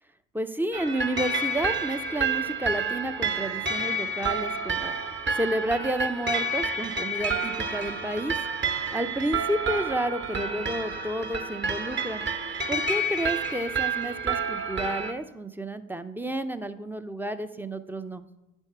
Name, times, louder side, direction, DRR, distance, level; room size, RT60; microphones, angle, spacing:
voice 1, 0.3-5.0 5.3-8.3 8.9-12.2 12.7-18.3, right 1 dB, 5° right, 10 dB, 0.4 m, -31 dB
sound 1, 0.7-15.1, right 3 dB, 35° right, 0.9 m, -29 dB
9.0 x 3.6 x 6.6 m, 0.98 s
hypercardioid pair, 65°, 34 cm